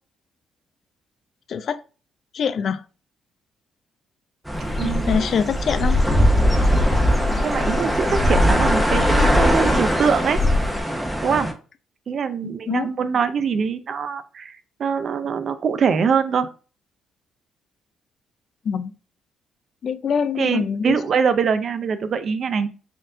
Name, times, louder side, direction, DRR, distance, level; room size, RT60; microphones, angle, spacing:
voice 1, 1.5-1.8 2.3-2.8 4.8-6.0 12.4-12.9 18.6-18.9 19.8-21.0, left 7 dB, 60° left, 0.4 m, -24 dB
Dog / Bird, 4.5-10.8, left 1 dB, 20° left, 1.1 m, -21 dB
sound 1, 4.5-11.5, equal, ahead, 0.7 m, -24 dB
voice 2, 4.8-5.3 7.4-10.4 11.2-11.5 12.1-16.5 20.4-22.7, right 6 dB, 55° right, 0.5 m, -23 dB
4.4 x 2.4 x 3.7 m
cardioid pair, 90°, 0 cm